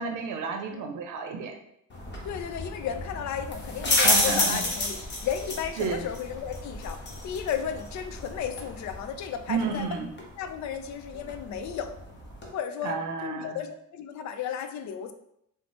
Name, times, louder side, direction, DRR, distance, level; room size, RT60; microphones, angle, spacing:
voice 1, 0.0-1.6 4.0-4.6 5.8-6.0 9.5-10.1 12.8-13.6, right 4 dB, 80° right, 4 dB, 0.6 m, -31 dB
sound 1, 1.9-12.5, left 2 dB, 35° left, 1.0 m, -31 dB
voice 2, 2.2-9.9 10.4-12.0 12.5-15.1, left 8 dB, 70° left, 8 dB, 0.5 m, -34 dB
4.1 x 2.1 x 3.0 m, 0.75 s
cardioid pair, 90°, 30 cm